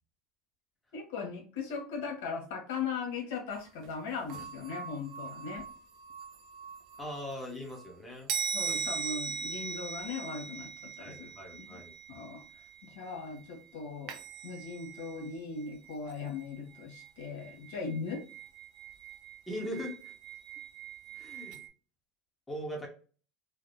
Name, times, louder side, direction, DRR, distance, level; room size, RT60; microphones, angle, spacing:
voice 1, 0.9-5.6 8.5-10.7 11.0-11.8 12.1-12.4 12.8-14.2 14.4-18.2, left 5 dB, 90° left, 0 dB, 1.1 m, -39 dB
sound 1, 3.6-3.7 3.8-3.9 4.3-7.9 8.3-13.5 14.1-15.3 15.6-21.7, right 6 dB, 60° right, 0.5 m, -41 dB
voice 2, 7.0-8.3 8.7-8.8 11.0-11.9 19.5-20.1 21.1-21.6 22.5-22.9, equal, 10° left, 0 dB, 0.9 m, -40 dB
3.3 x 2.0 x 2.5 m, 0.39 s
cardioid pair, 145°, 0 cm